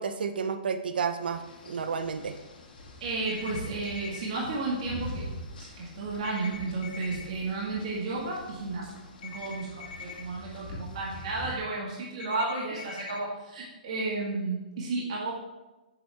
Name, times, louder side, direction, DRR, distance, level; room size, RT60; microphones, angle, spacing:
voice 1, 0.0-2.4, right 6 dB, 80° right, 9 dB, 0.8 m, -31 dB
sound 1, 1.2-11.6, left 1 dB, 75° left, 2.0 m, -44 dB
voice 2, 3.0-5.3 5.5-8.9 9.2-15.3, right 3 dB, 40° right, -5 dB, 1.9 m, -33 dB
sound 2, 3.3-4.3 6.2-7.2 9.2-10.2 12.2-13.2, left 6 dB, 45° left, 1.1 m, -43 dB
7.2 x 6.8 x 3.5 m, 1.1 s
hypercardioid pair, 175°, 5 cm